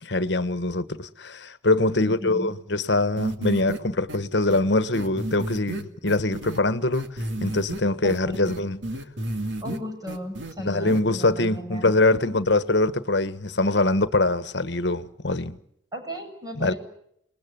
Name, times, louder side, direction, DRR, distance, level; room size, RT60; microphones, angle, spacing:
voice 1, 0.0-8.8 10.6-15.6 16.6-16.7, left 2 dB, 65° left, 1.4 m, -23 dB
voice 2, 2.0-2.5 8.0-8.5 9.6-12.4 15.9-16.8, left 1 dB, 20° right, 7.4 m, -35 dB
sound 1, 3.2-3.8 4.1-4.2 4.5-4.6 4.9-6.6 6.9-7.8 8.1-9.8 10.1-10.5 10.9-11.0, right 1 dB, 70° right, 2.4 m, -31 dB
29.5 x 20.5 x 9.5 m
head